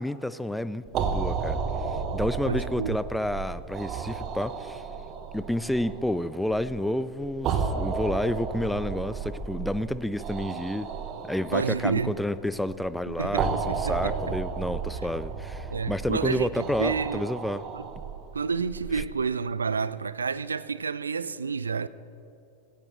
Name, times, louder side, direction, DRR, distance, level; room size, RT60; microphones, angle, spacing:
voice 1, 0.0-1.6 2.1-4.8 5.3-10.9 11.2-17.6 18.9-19.0, left 1 dB, ahead, 0.4 m, -30 dB
sound 1, 0.9-19.0, right 5 dB, 35° right, 1.1 m, -33 dB
voice 2, 2.4-3.0 11.5-12.1 13.1-14.4 15.7-17.2 17.7-17.9 18.3-21.9, right 5 dB, 75° right, 0.4 m, -29 dB
17.0 x 16.0 x 3.2 m
figure-of-eight pair, 90°, 0 cm